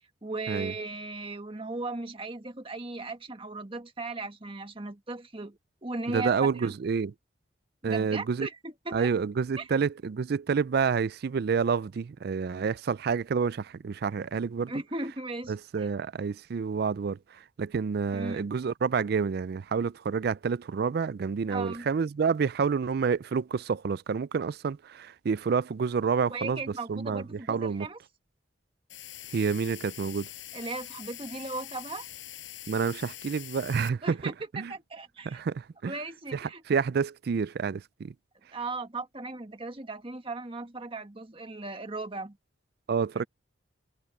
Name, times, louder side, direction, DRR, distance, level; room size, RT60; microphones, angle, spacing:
voice 1, 0.2-6.7 7.8-9.1 9.6-9.7 14.7-15.9 18.1-18.5 21.5-21.9 26.3-28.0 30.5-32.1 34.0-35.4 35.8-36.6 38.5-42.4 43.1-43.3, right 3 dB, 30° right, 1.5 m, -37 dB
voice 2, 6.1-7.1 7.8-8.5 8.9-14.7 15.5-27.9 29.3-30.3 32.7-34.2 34.5-34.7 35.3-35.9 36.3-38.1 42.9-43.3, right 5 dB, 55° right, 0.4 m, -29 dB
sound 1, 28.9-33.9, left 13 dB, 80° left, 6.6 m, -44 dB
head